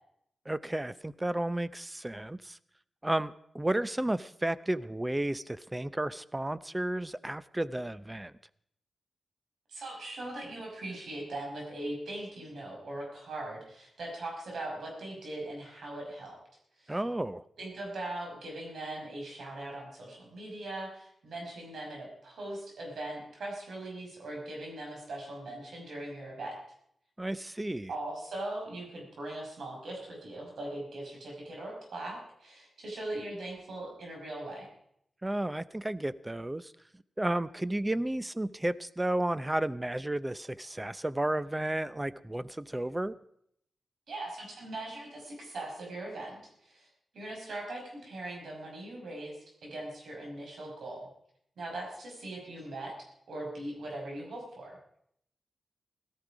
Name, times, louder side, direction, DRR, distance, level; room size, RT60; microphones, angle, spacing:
voice 1, 0.5-2.6 3.0-8.3 16.9-17.4 27.2-27.9 35.2-43.2, right 1 dB, 15° right, 16 dB, 0.6 m, -32 dB
voice 2, 9.7-16.3 16.8-17.0 17.6-26.6 27.9-34.7 44.1-46.9 47.1-51.1 51.6-54.8, right 1 dB, 80° right, -1 dB, 5.8 m, -40 dB
17.5 x 13.0 x 5.0 m, 0.72 s
wide cardioid pair, 90°, 0 cm